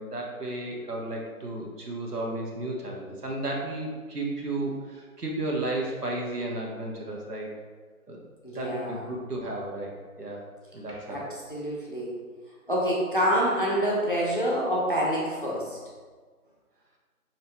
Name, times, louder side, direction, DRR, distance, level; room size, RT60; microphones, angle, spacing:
voice 1, 0.0-7.5 8.1-8.2 8.5-9.9 10.2-10.4 10.7-11.2, right 2 dB, 85° right, -1 dB, 1.2 m, -33 dB
voice 2, 8.4-9.0 11.1-11.2 11.5-12.1 12.7-15.8, equal, 35° left, -5 dB, 0.8 m, -26 dB
6.4 x 2.9 x 2.2 m, 1.5 s
figure-of-eight pair, 175°, 45 cm